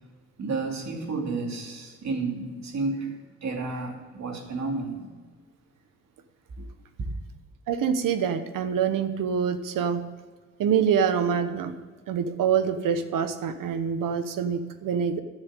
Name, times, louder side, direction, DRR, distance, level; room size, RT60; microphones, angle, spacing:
voice 1, 0.4-5.1 6.6-6.7 7.0-7.1, right 3 dB, 60° right, 1 dB, 2.6 m, -31 dB
voice 2, 7.7-10.0 10.6-11.7 12.1-15.2, right 7 dB, 85° right, 10 dB, 1.1 m, -25 dB
12.0 x 6.7 x 8.4 m, 1.4 s
cardioid pair, 95°, 32 cm